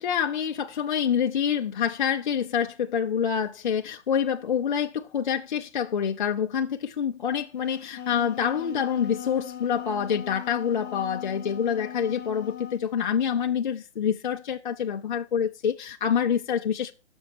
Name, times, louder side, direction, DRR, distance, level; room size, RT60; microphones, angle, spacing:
voice 1, 0.0-16.9, left 8 dB, 45° left, 0.4 m, -27 dB
Wind instrument woodwind instrument, 7.7-12.9, left 9 dB, 70° left, 1.1 m, -39 dB
6.2 x 5.9 x 5.1 m
hypercardioid pair, 160°, 34 cm